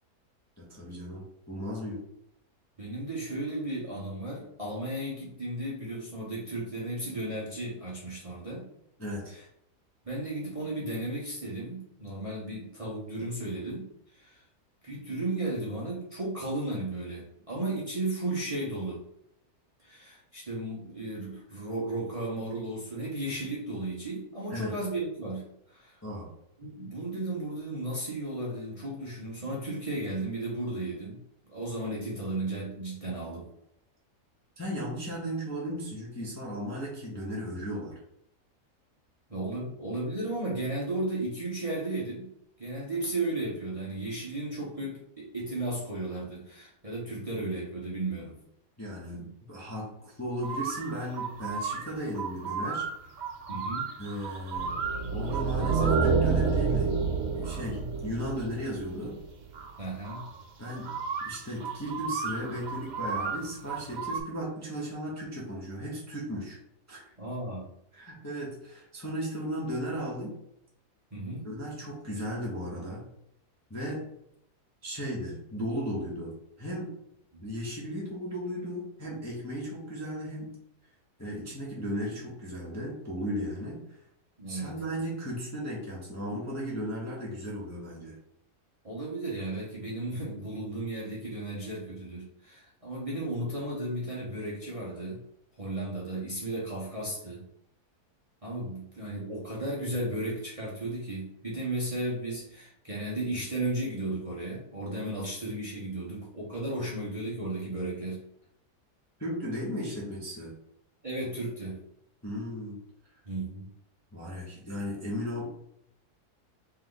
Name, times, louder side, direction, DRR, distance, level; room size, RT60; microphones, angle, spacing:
voice 1, 0.6-2.0 9.0-9.4 24.5-24.7 26.0-26.3 34.6-38.0 48.8-52.9 54.0-54.8 55.1-57.0 57.3-59.2 60.6-60.9 61.2-66.6 66.9-67.1 67.9-70.3 71.4-73.1 73.7-74.0 74.8-76.9 77.4-80.5 81.2-83.8 84.5-88.2 109.2-110.5 112.2-112.8 114.1-115.5, equal, 15° left, -5 dB, 0.8 m, -36 dB
voice 2, 2.8-8.6 9.2-9.4 10.0-13.9 14.1-14.4 14.8-19.0 19.8-26.0 26.6-31.2 31.5-33.5 39.3-42.3 42.6-48.4 53.5-53.9 59.8-60.3 67.2-67.7 71.1-71.5 77.3-77.4 84.4-84.7 88.8-95.2 95.6-97.4 98.4-108.2 111.0-111.8 113.3-113.7, right 2 dB, 25° right, -6 dB, 0.9 m, -34 dB
sound 1, 50.4-64.2, right 5 dB, 80° right, 0.4 m, -36 dB
sound 2, 54.5-59.0, right 5 dB, 50° right, 1.0 m, -27 dB
3.3 x 3.3 x 3.8 m, 0.76 s
omnidirectional pair, 1.7 m